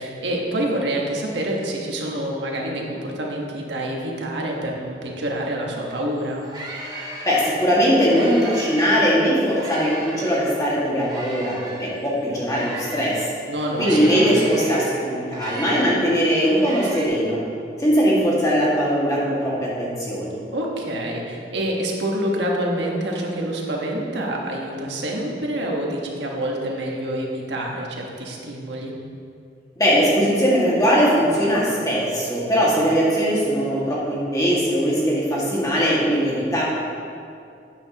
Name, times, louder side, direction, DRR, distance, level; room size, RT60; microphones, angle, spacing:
voice 1, 0.0-6.4 11.9-12.0 13.5-14.4 20.4-28.9, right 1 dB, 80° right, -1 dB, 1.4 m, -27 dB
sound 1, 5.9-6.0 6.2-9.0 9.5-13.3 13.7-17.1, right 1 dB, 20° right, 1.1 m, -36 dB
voice 2, 7.2-13.3 13.8-17.4 17.8-20.4 29.8-36.6, equal, 20° left, -6 dB, 1.8 m, -20 dB
11.5 x 8.7 x 2.9 m, 2.5 s
head